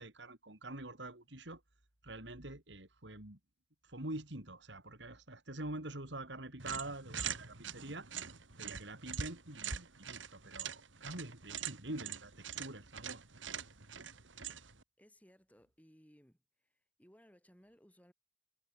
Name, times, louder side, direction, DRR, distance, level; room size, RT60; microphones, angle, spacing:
voice 1, 0.0-1.6 2.0-3.4 3.8-8.1 8.6-13.2, right 2 dB, 65° right, 3.9 m, -46 dB
sound 1, 6.6-14.8, right 7 dB, 85° right, 2.9 m, -44 dB
voice 2, 15.0-18.1, equal, 10° left, 7.5 m, -64 dB
head